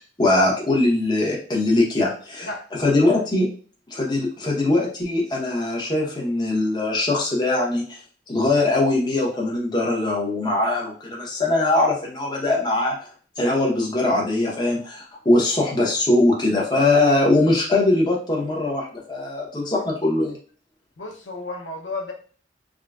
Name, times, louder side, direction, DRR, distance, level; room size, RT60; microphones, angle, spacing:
voice 1, 0.0-2.5 2.8-3.5 3.9-8.0 8.3-12.9 13.4-20.4, left 2 dB, 25° left, -3 dB, 0.9 m, -21 dB
voice 2, 21.0-22.1, left 2 dB, 85° left, 0 dB, 0.6 m, -32 dB
3.7 x 2.1 x 2.3 m, 0.41 s
head